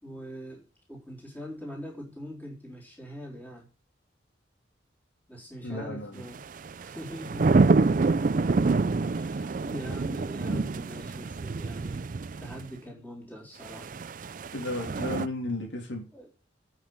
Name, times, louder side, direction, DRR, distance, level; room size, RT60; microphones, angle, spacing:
voice 1, 0.0-3.7 5.3-6.4 6.8-7.6 9.0-12.0 12.4-14.0 16.1-16.3, equal, 10° left, 3.9 m, -42 dB
voice 2, 5.6-6.3 10.5-10.6 14.5-16.0, left 2 dB, 75° left, 2.9 m, -34 dB
sound 1, 6.3-12.6 13.6-15.3, right 3 dB, 45° right, 0.4 m, -27 dB
9.1 x 5.9 x 7.7 m
head